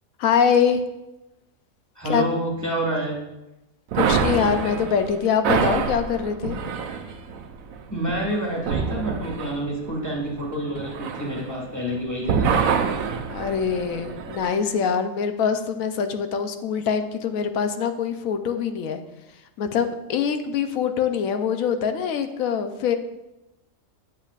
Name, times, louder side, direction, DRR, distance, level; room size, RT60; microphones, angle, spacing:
voice 1, 0.2-0.8 2.1-2.2 3.9-6.6 13.3-19.0 19.6-23.0, left 7 dB, 85° left, 8 dB, 1.0 m, -24 dB
voice 2, 1.9-3.2 7.9-12.6, right 1 dB, 15° left, -3 dB, 1.5 m, -28 dB
sound 1, 3.9-11.9 12.2-14.6, right 6 dB, 80° right, 1.1 m, -26 dB
8.9 x 7.2 x 2.4 m, 0.98 s
omnidirectional pair, 1.4 m